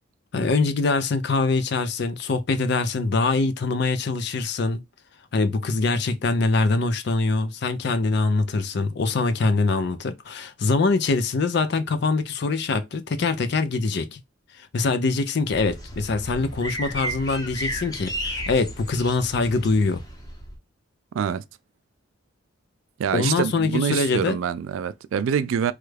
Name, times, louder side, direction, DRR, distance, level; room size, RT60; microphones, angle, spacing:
voice 1, 0.3-4.8 5.3-14.2 14.6-20.0 23.1-24.4, left 3 dB, 55° left, 0.4 m, -23 dB
sound 1, 15.5-20.6, equal, 20° left, 0.8 m, -33 dB
voice 2, 23.0-25.7, right 7 dB, 75° right, 0.3 m, -25 dB
3.1 x 2.3 x 3.2 m
head